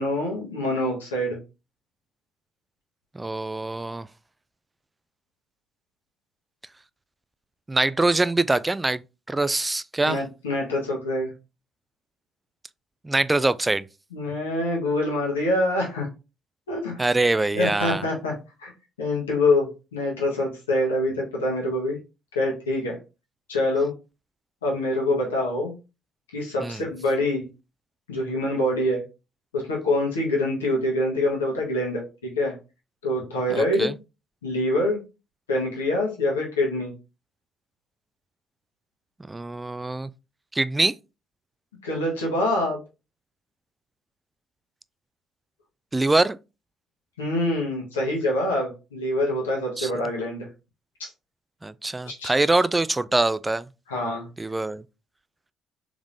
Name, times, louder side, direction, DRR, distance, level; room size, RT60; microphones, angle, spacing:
voice 1, 0.0-1.4 10.1-11.3 14.1-16.1 16.7-17.0 17.5-18.7 19.0-22.0 22.3-23.0 23.5-23.9 24.6-25.7 26.3-27.5 28.1-29.0 29.5-32.5 33.0-33.9 34.4-35.0 35.5-36.9 41.8-42.8 47.2-50.5 51.0-51.1 52.1-52.3 53.9-54.3, left 1 dB, 90° left, 1.2 m, -25 dB
voice 2, 3.1-4.1 7.7-9.0 9.3-10.2 13.0-13.8 17.0-18.0 26.6-26.8 33.5-34.0 39.3-40.1 40.5-40.9 45.9-46.4 49.8-49.9 51.6-53.7 54.4-54.8, right 2 dB, 20° right, 0.3 m, -24 dB
3.6 x 3.5 x 2.6 m
hypercardioid pair, 50°, 0 cm